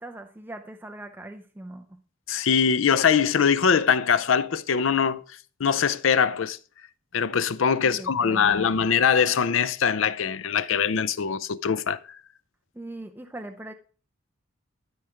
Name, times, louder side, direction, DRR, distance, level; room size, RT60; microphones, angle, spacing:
voice 1, 0.0-1.9 7.8-8.8 12.7-13.7, right 1 dB, 10° right, 0.5 m, -40 dB
voice 2, 2.3-5.2 5.6-6.6 7.1-12.0, left 6 dB, 75° left, 0.5 m, -22 dB
12.5 x 5.0 x 4.4 m
head